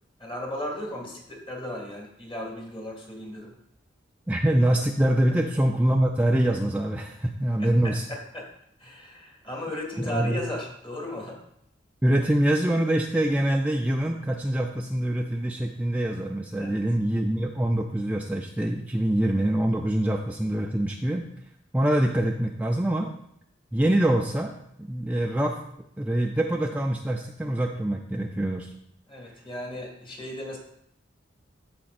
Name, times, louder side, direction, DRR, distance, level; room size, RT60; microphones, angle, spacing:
voice 1, 0.2-3.5 7.6-8.5 8.8-11.4 16.6-16.8 29.1-30.6, left 1 dB, 30° left, -2 dB, 2.1 m, -36 dB
voice 2, 4.3-8.1 10.0-10.4 12.0-21.3 21.7-23.1 23.7-24.5 24.8-25.6 26.0-28.7, right 1 dB, 10° right, 2 dB, 0.4 m, -24 dB
14.5 x 5.2 x 2.5 m, 0.75 s
head